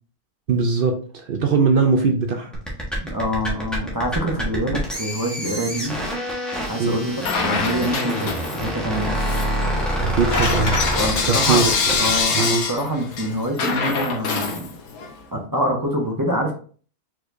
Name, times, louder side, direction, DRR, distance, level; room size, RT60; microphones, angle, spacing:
voice 1, 0.5-2.5 4.5-4.8 6.8-7.1 10.0-10.8 11.3-12.0 12.3-12.7, right 5 dB, 85° right, 5 dB, 0.4 m, -21 dB
sound 1, 2.5-12.2, equal, ahead, 1.1 m, -27 dB
voice 2, 3.0-5.9 6.7-9.2 10.8-11.6 12.0-14.7 15.3-16.5, equal, 20° right, 0 dB, 0.7 m, -25 dB
Bell / Coin (dropping), 7.2-8.8 9.1-15.1, left 5 dB, 70° left, 1.3 m, -25 dB
sound 2, 9.9-11.0, left 3 dB, 35° left, 1.0 m, -25 dB
4.6 x 4.4 x 2.6 m, 0.42 s
omnidirectional pair, 1.6 m